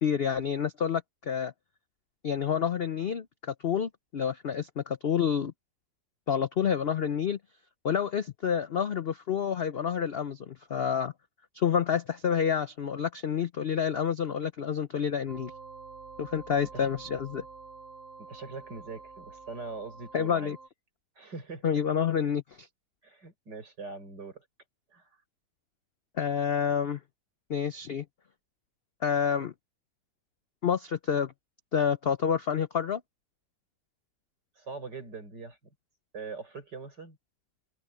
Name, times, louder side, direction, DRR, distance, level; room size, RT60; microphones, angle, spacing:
voice 1, 0.0-1.5 2.2-5.5 6.3-7.4 7.8-11.1 11.5-15.5 16.2-17.5 20.1-20.6 21.6-22.7 26.1-27.0 27.5-28.1 29.0-29.5 30.6-31.3 31.7-33.0, left 7 dB, 65° left, 0.6 m, -28 dB
sound 1, 15.3-20.7, right 4 dB, 45° right, 3.5 m, -48 dB
voice 2, 18.2-20.5 21.2-21.6 23.0-24.4 24.9-25.0 34.6-35.6 36.1-37.2, right 4 dB, 75° right, 6.5 m, -42 dB
omnidirectional pair, 1.9 m